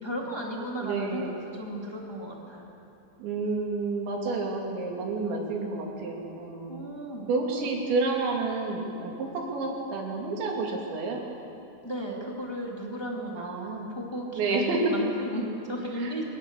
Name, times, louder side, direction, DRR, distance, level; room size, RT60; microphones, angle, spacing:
voice 1, 0.0-2.7 6.7-7.3 11.8-13.4 13.9-16.2, equal, 15° left, -2 dB, 1.0 m, -35 dB
voice 2, 0.8-1.3 3.2-6.8 7.3-11.2 13.4-13.9 14.4-14.8 16.0-16.2, right 3 dB, 75° right, -1 dB, 5.1 m, -30 dB
25.0 x 18.0 x 7.4 m, 2.8 s
omnidirectional pair, 5.2 m